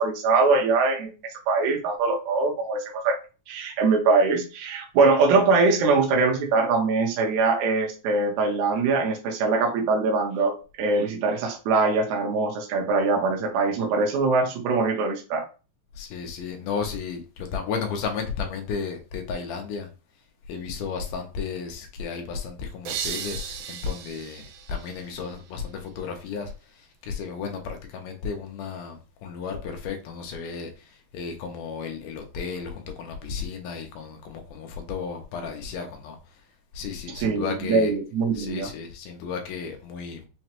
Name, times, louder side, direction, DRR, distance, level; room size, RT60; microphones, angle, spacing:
voice 1, 0.0-3.2 3.5-15.5 37.2-38.7, right 4 dB, 70° right, 2.0 m, -22 dB
voice 2, 16.0-19.9 20.5-36.4 36.7-38.0 38.3-40.3, left 6 dB, 80° left, 2.1 m, -33 dB
sound 1, 22.9-25.6, right 8 dB, 90° right, 1.6 m, -36 dB
5.8 x 2.1 x 2.8 m
omnidirectional pair, 3.9 m